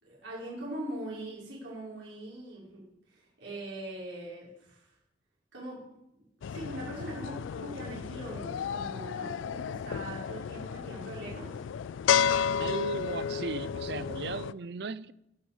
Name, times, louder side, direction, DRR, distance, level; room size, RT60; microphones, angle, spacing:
voice 1, 0.0-4.9 5.5-5.8 6.4-11.6, right 1 dB, 85° right, 5.5 m, -41 dB
sound 1, 6.4-14.5, left 8 dB, 90° left, 0.3 m, -32 dB
voice 2, 12.6-15.1, right 4 dB, 60° right, 0.5 m, -36 dB
11.5 x 6.4 x 7.4 m
head